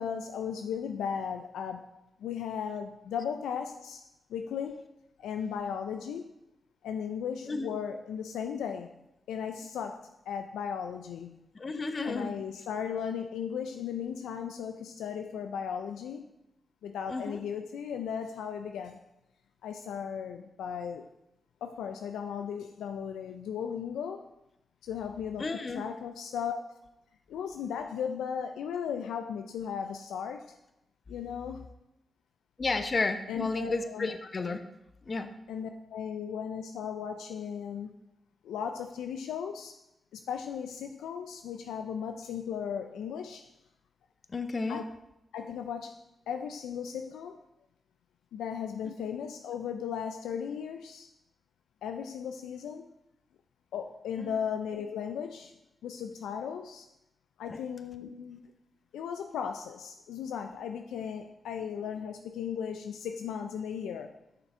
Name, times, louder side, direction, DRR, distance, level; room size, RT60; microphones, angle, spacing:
voice 1, 0.0-1.9 2.2-4.0 4.3-4.9 5.2-6.3 6.8-8.9 9.3-11.4 12.0-16.3 16.8-19.0 19.6-21.1 21.6-24.3 24.8-25.5 25.7-26.8 27.3-30.5 31.1-31.7 33.3-34.1 35.5-38.0 38.4-39.8 40.1-43.5 44.7-44.9 45.3-46.0 46.3-47.4 48.3-51.1 51.8-52.9 53.7-55.5 55.8-56.9 57.4-58.5 58.9-64.1, left 7 dB, 85° left, 6 dB, 0.4 m, -36 dB
voice 2, 11.5-12.4 17.1-17.4 25.4-25.8 32.6-34.6 35.1-35.3 44.3-44.8 48.8-48.9 54.2-54.3 57.5-57.6, left 3 dB, 50° left, 8 dB, 0.8 m, -32 dB
6.7 x 5.9 x 4.4 m, 0.87 s
supercardioid pair, 45°, 0 cm